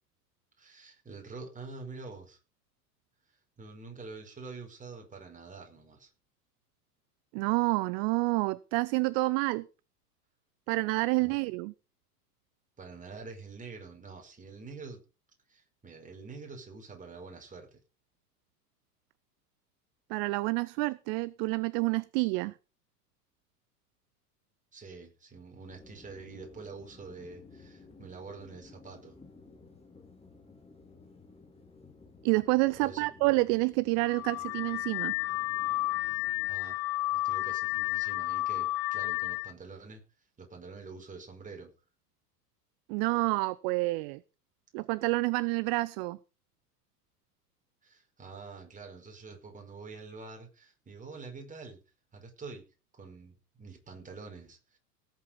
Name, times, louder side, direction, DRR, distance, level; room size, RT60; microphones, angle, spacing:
voice 1, 0.6-2.4 3.3-6.1 11.2-11.4 12.8-15.0 15.5-17.8 24.7-29.2 32.8-33.1 36.5-36.8 37.1-40.0 40.4-41.7 47.8-51.8 52.1-52.6 52.9-54.8, right 4 dB, 15° right, 5.3 m, -46 dB
voice 2, 7.3-9.7 10.7-11.7 20.1-22.5 32.2-35.1 42.9-44.2 44.7-46.2, right 24 dB, 35° right, 0.5 m, -28 dB
sound 1, 25.7-36.6, left 3 dB, 10° left, 2.3 m, -55 dB
Car / Alarm, 34.0-39.5, left 19 dB, 35° left, 0.9 m, -32 dB
18.0 x 8.1 x 5.3 m
figure-of-eight pair, 90°, 48 cm